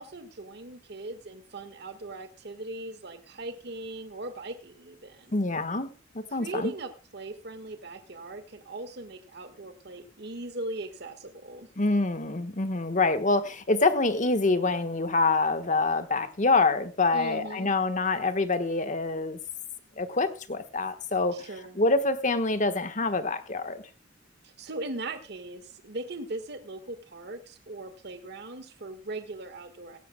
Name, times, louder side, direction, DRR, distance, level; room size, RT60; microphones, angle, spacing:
voice 1, 0.0-5.4 6.3-11.7 17.1-17.7 21.3-21.8 24.4-30.0, right 2 dB, 60° right, 8 dB, 1.5 m, -39 dB
voice 2, 5.3-5.9 6.1-6.7 11.8-19.4 20.0-21.5 21.7-23.8, left 3 dB, 40° left, 10 dB, 1.3 m, -26 dB
17.0 x 15.5 x 2.2 m, 0.33 s
head